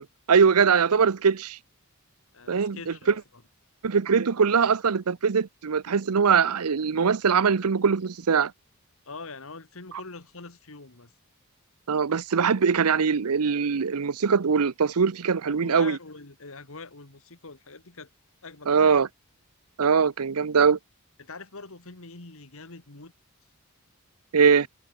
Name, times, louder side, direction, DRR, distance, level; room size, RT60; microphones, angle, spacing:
voice 1, 0.0-1.6 2.5-2.8 3.8-8.5 11.9-16.0 18.7-19.1 19.8-20.8 24.3-24.7, right 6 dB, 85° right, 0.7 m, -22 dB
voice 2, 2.3-3.2 9.1-11.1 15.3-18.1 18.4-18.9 21.2-23.1, left 3 dB, 65° left, 2.1 m, -43 dB
head